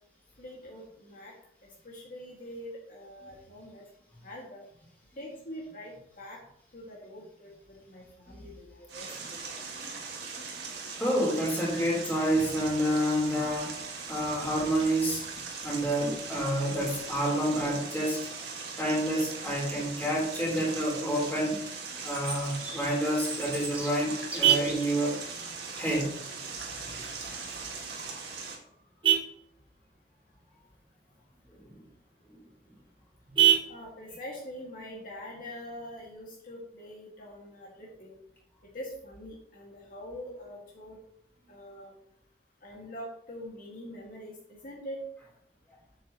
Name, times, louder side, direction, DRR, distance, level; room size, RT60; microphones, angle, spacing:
voice 1, 0.4-1.3 1.8-3.8 4.2-4.6 5.2-6.4 6.7-9.4 33.7-38.1 38.6-41.0 41.5-41.9 42.6-45.0, left 1 dB, 50° left, -3 dB, 1.8 m, -44 dB
sound 1, 8.9-28.6, right 4 dB, 65° right, 1.7 m, -40 dB
voice 2, 11.0-13.7 14.1-15.2 15.6-18.2 18.8-21.6 22.0-25.2 25.8-26.2 33.3-33.4, right 1 dB, 10° left, -6 dB, 3.4 m, -28 dB
Chirp tweet, 21.9-24.9, right 2 dB, 10° right, 1.8 m, -40 dB
Vehicle horn car horn honking, 23.1-36.1, right 10 dB, 30° right, 1.3 m, -33 dB
8.3 x 7.7 x 2.9 m, 0.72 s
head